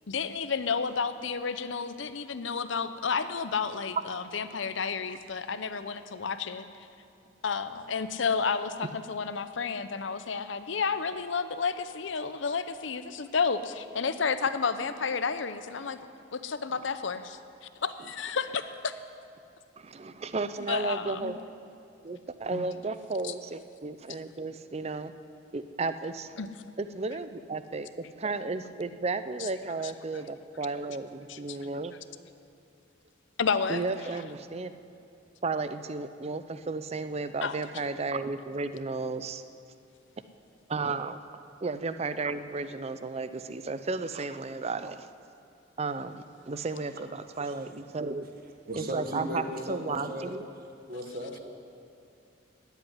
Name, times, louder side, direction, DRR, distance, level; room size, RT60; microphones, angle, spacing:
voice 1, 0.1-6.6 7.4-16.0 16.3-17.4 17.8-18.9 20.7-21.4 22.5-22.7 23.2-23.3 26.4-26.5 29.4-29.5 29.8-29.9 31.3-31.4 33.4-33.8 37.4-37.6, left 5 dB, 70° left, 11 dB, 0.7 m, -31 dB
voice 2, 19.8-21.4 22.0-25.1 25.5-26.4 26.8-31.9 33.7-34.7 35.4-39.4 40.7-41.2 41.6-45.1 45.8-48.3 48.8-49.4 49.7-50.5, right 3 dB, 30° right, 11 dB, 0.5 m, -33 dB
voice 3, 48.7-50.3 50.9-51.4, equal, 50° right, 3 dB, 1.6 m, -36 dB
14.0 x 8.2 x 9.8 m, 2.5 s
head